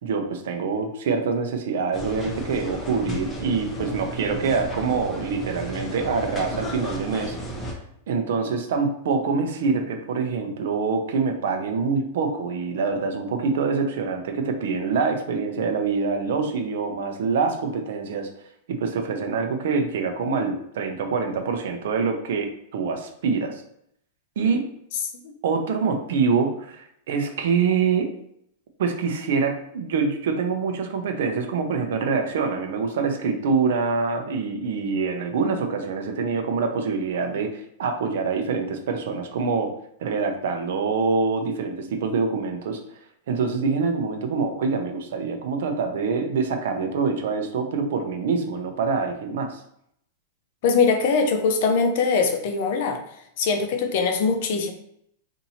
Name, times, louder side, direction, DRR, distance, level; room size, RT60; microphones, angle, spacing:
voice 1, 0.0-7.4 8.1-18.3 18.7-23.6 24.4-24.7 25.4-28.1 28.8-39.7 40.0-42.8 43.3-49.6, right 5 dB, 70° right, 5 dB, 0.6 m, -25 dB
sound 1, 1.9-7.7, right 1 dB, 15° left, 0.7 m, -34 dB
voice 2, 50.6-53.0 53.4-54.7, left 5 dB, 55° left, 6 dB, 0.6 m, -22 dB
2.8 x 2.6 x 4.2 m, 0.73 s
supercardioid pair, 155°, 0 cm